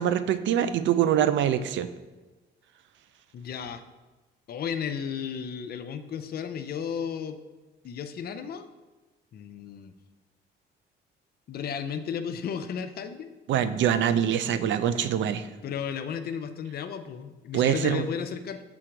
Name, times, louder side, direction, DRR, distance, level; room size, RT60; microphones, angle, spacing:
voice 1, 0.0-1.9 13.5-15.4 17.5-18.0, right 9 dB, 70° right, 12 dB, 0.4 m, -24 dB
voice 2, 3.3-3.8 4.5-7.4 7.8-8.7 9.3-9.9 11.5-13.3 15.6-18.6, left 7 dB, 50° left, 7 dB, 0.5 m, -34 dB
6.2 x 3.8 x 4.5 m, 1.2 s
cardioid pair, 90°, 20 cm